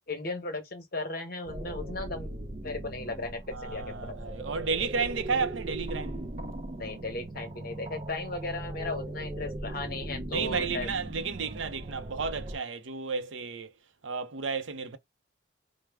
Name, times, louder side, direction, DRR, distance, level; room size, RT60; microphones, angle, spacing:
voice 1, 0.1-2.3 2.6-4.4 6.8-10.9, left 3 dB, 50° left, 0.9 m, -36 dB
sound 1, 1.5-12.6, right 1 dB, 35° right, 0.5 m, -39 dB
voice 2, 3.5-6.2 10.3-13.7 14.0-15.0, right 5 dB, 80° right, 0.6 m, -32 dB
4.7 x 2.1 x 3.4 m
head